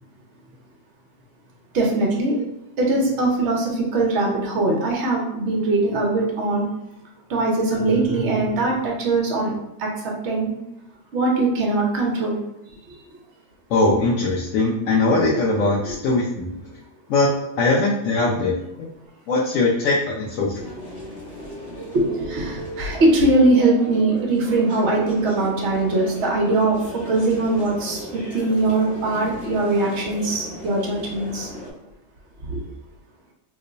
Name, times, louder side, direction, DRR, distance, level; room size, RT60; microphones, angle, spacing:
voice 1, 1.7-2.5 2.8-6.7 7.3-9.5 9.8-10.5 11.1-12.4 15.9-16.0 21.9-26.8 27.1-28.0 28.3-31.5 32.5-32.6, right 2 dB, 55° right, -1 dB, 1.0 m, -21 dB
sound 1, 7.7-9.2, right 7 dB, 90° left, 1.3 m, -34 dB
voice 2, 13.7-16.6 17.1-17.3 17.6-18.9 19.3-20.6, left 3 dB, 70° left, -6 dB, 0.9 m, -21 dB
sound 2, 20.5-31.7, left 1 dB, 45° left, 0.9 m, -36 dB
3.0 x 2.1 x 3.8 m, 0.85 s
omnidirectional pair, 1.6 m